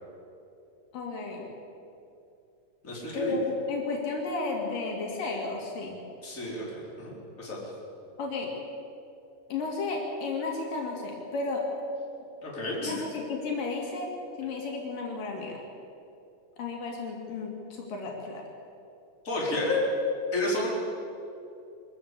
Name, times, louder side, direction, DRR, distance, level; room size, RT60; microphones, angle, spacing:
voice 1, 0.9-1.5 3.1-6.0 8.2-8.5 9.5-11.7 12.8-14.1 14.4-15.6 16.6-18.4 19.5-19.6, left 3 dB, 80° left, -1 dB, 4.3 m, -33 dB
voice 2, 2.8-3.4 6.2-7.6 12.4-13.0 19.2-19.8 20.3-20.7, left 2 dB, 20° left, -4 dB, 4.8 m, -31 dB
23.5 x 14.5 x 8.4 m, 2.7 s
omnidirectional pair, 3.9 m